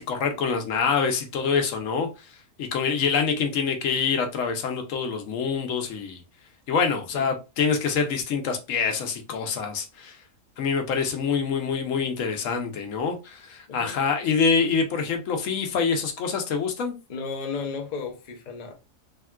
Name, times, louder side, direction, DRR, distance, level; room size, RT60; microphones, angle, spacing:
voice 1, 0.0-2.1 2.6-6.2 6.7-10.2 10.6-17.0, left 5 dB, 75° left, 1.0 m, -25 dB
voice 2, 13.7-14.0 17.1-18.7, left 4 dB, 45° left, 0.6 m, -34 dB
3.5 x 2.3 x 2.2 m
omnidirectional pair, 1.4 m